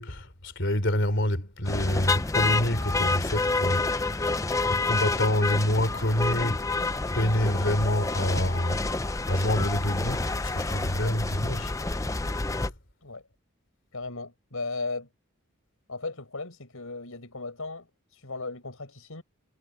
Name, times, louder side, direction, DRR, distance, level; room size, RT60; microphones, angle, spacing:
voice 1, 0.0-4.3 4.6-6.7 7.1-8.9 9.3-11.7, left 1 dB, 55° left, 3.8 m, -27 dB
sound 1, 1.6-12.7, left 3 dB, 15° left, 0.5 m, -28 dB
voice 2, 13.9-15.1 15.9-19.2, left 3 dB, 75° left, 4.6 m, -36 dB
head